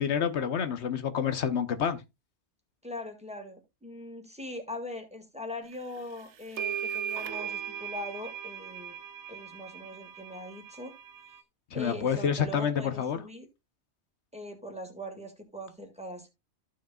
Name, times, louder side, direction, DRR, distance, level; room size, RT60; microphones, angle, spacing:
voice 1, 0.0-2.0 11.7-13.2, left 7 dB, 75° left, 1.1 m, -28 dB
voice 2, 2.8-9.0 9.3-10.9 11.7-13.5 14.3-16.3, left 1 dB, 5° right, 2.0 m, -41 dB
sound 1, 6.0-6.1 6.6-11.4, right 9 dB, 90° right, 1.1 m, -38 dB
14.5 x 6.3 x 2.3 m
omnidirectional pair, 1.2 m